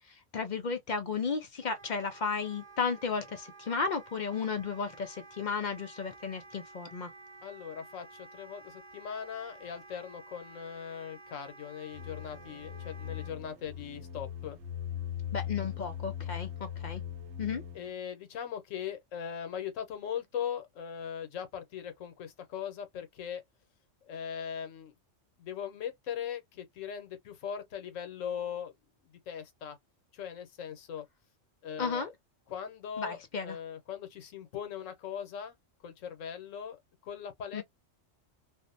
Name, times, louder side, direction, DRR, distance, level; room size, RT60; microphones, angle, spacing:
voice 1, 0.0-7.1 15.3-17.0 17.4-17.6 31.8-32.1 33.0-33.6 37.5-37.6, left 5 dB, 65° left, 0.4 m, -34 dB
Wind instrument woodwind instrument, 1.6-13.3, right 3 dB, 40° right, 0.6 m, -52 dB
voice 2, 7.4-14.6 17.7-23.4 24.0-24.9 25.4-28.7 29.3-29.8 30.1-31.0 31.6-32.1 32.5-35.6 35.8-36.8 37.0-37.6, left 8 dB, 85° left, 1.1 m, -40 dB
sound 1, 11.9-17.9, left 10 dB, 65° right, 0.9 m, -40 dB
2.6 x 2.0 x 2.5 m
omnidirectional pair, 1.3 m